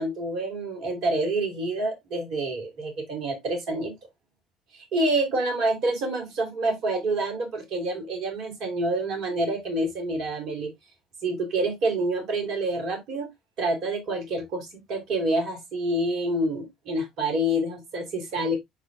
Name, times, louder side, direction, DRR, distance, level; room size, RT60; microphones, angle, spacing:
voice 1, 0.0-3.9 4.7-10.7 11.2-13.3 13.6-18.6, right 1 dB, 60° right, 3.0 m, -27 dB
12.0 x 4.4 x 2.2 m
figure-of-eight pair, 55°, 0 cm